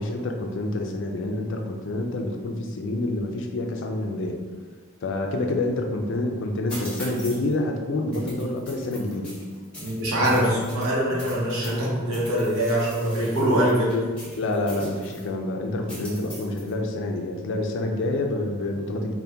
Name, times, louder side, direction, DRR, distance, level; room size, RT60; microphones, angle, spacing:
voice 1, 0.0-4.4 5.0-9.3 10.2-10.5 13.9-14.1 14.3-19.2, left 2 dB, 65° left, 3 dB, 0.4 m, -27 dB
sound 1, 6.7-7.5 8.1-11.8 12.1-15.3 15.9-16.7, equal, 5° left, 0.9 m, -41 dB
voice 2, 9.8-13.9, right 1 dB, 80° right, -6 dB, 0.8 m, -23 dB
2.7 x 2.2 x 3.4 m, 1.5 s
head